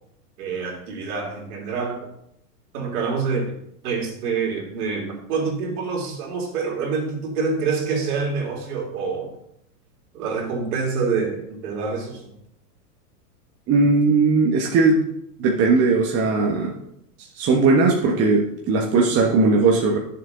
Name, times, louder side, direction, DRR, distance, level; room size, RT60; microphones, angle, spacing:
voice 1, 0.4-2.1 2.7-3.5 3.8-9.3 10.1-12.3, right 5 dB, 65° right, -1 dB, 3.5 m, -26 dB
voice 2, 13.7-15.0 15.4-16.8 17.4-20.0, right 3 dB, 30° right, -1 dB, 1.4 m, -18 dB
10.5 x 7.2 x 3.9 m, 0.75 s
hypercardioid pair, 120°, 49 cm